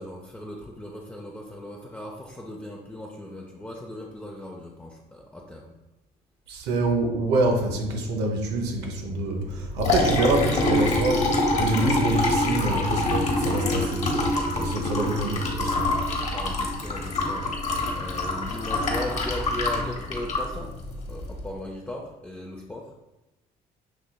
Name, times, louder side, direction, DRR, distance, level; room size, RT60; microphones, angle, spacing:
voice 1, 0.0-5.7 16.2-20.7 21.1-22.9, left 1 dB, 10° left, -2 dB, 0.4 m, -38 dB
voice 2, 6.5-15.9, right 2 dB, 85° right, 1 dB, 0.7 m, -26 dB
Liquid, 9.5-21.4, left 2 dB, 40° left, 1.0 m, -26 dB
6.2 x 2.8 x 2.2 m, 0.98 s
cardioid pair, 110°, 17 cm